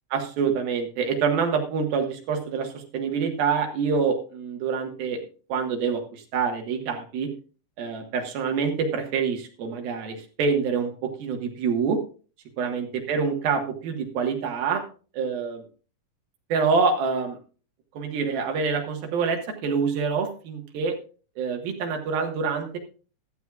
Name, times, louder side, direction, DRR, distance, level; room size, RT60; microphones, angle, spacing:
voice 1, 0.1-7.3 7.8-12.0 12.6-14.8 15.1-15.6 16.5-17.4 17.9-21.0 21.4-22.8, right 5 dB, 80° right, 3 dB, 3.3 m, -26 dB
14.0 x 12.5 x 2.4 m, 0.36 s
omnidirectional pair, 4.2 m